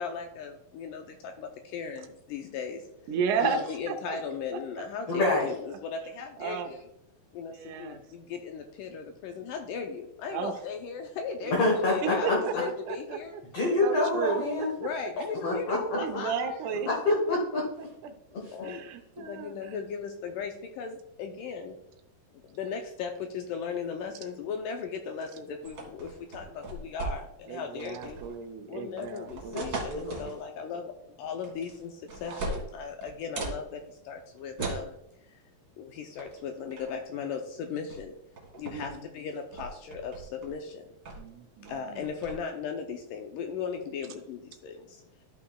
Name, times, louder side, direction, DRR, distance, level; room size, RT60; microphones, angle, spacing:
voice 1, 0.0-2.9 3.4-6.9 7.3-13.4 14.8-16.7 18.5-18.9 19.2-21.8 22.3-28.2 28.7-35.4 35.8-38.2 38.6-40.9 41.6-45.0, left 6 dB, 80° left, 4 dB, 2.0 m, -37 dB
voice 2, 3.1-3.6 3.9-4.2 6.4-6.7 7.5-8.0 10.3-10.5 11.4-11.5 12.2-12.5 12.9-13.2 13.8-14.4 15.9-16.9 18.6-19.5 27.5-29.7 38.7-39.0 41.2-42.0, right 6 dB, 90° right, 5 dB, 1.7 m, -33 dB
voice 3, 5.1-5.5 11.5-12.6 13.5-14.7 15.4-15.8 16.9-17.9 18.3-18.5 29.5-30.2, left 2 dB, 55° left, -2 dB, 1.9 m, -27 dB
sound 1, 25.6-27.5 27.8-28.4 29.0-30.4 31.4-31.8 32.1-33.6 34.6-34.9 36.2-36.4 36.7-37.0 37.9-38.1 38.4-38.9 39.3-40.5 41.1-41.3 41.7-42.4, right 2 dB, 40° right, 1.8 m, -38 dB
13.0 x 5.7 x 2.3 m, 0.79 s
omnidirectional pair, 4.3 m